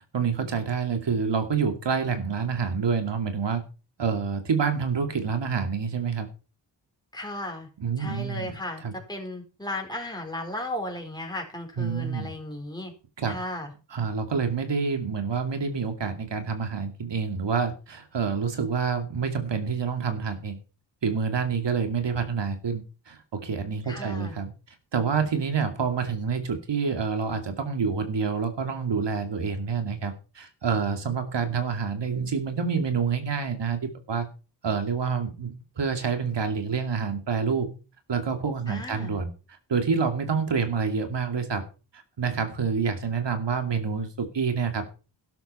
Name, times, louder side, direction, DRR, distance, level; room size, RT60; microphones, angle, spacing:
voice 1, 0.1-3.6 4.0-6.3 7.8-9.0 11.8-12.3 13.2-13.3 13.9-20.6 21.0-24.5 24.9-34.3 34.6-37.7 38.1-39.3 39.7-41.6 42.2-44.8, right 5 dB, 75° right, 6 dB, 2.6 m, -27 dB
voice 2, 7.1-7.7 8.0-8.8 9.1-12.9 13.2-13.7 23.9-24.3 38.7-39.2, left 1 dB, 10° left, 2 dB, 4.6 m, -35 dB
12.5 x 12.0 x 4.4 m, 0.34 s
wide cardioid pair, 85°, 43 cm